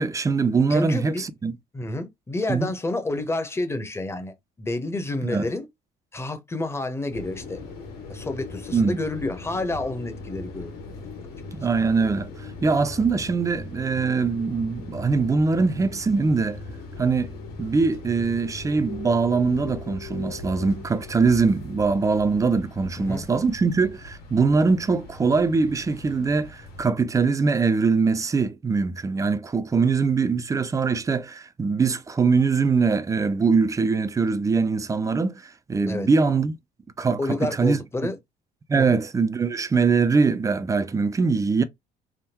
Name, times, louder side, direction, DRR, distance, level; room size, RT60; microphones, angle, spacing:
voice 1, 0.0-1.5 2.5-2.7 5.2-5.4 8.7-9.0 11.6-12.3 12.6-16.6 17.0-17.3 17.6-36.5 37.0-37.8 38.7-41.6, right 4 dB, 20° right, 0.4 m, -22 dB
voice 2, 0.7-1.2 1.7-5.7 6.1-10.8 23.0-23.2 35.9-36.1 37.2-38.2 38.8-39.0, left 2 dB, 15° left, 0.8 m, -29 dB
sound 1, 7.1-26.8, left 3 dB, 70° left, 1.6 m, -39 dB
3.5 x 2.2 x 2.8 m
cardioid pair, 110°, 17 cm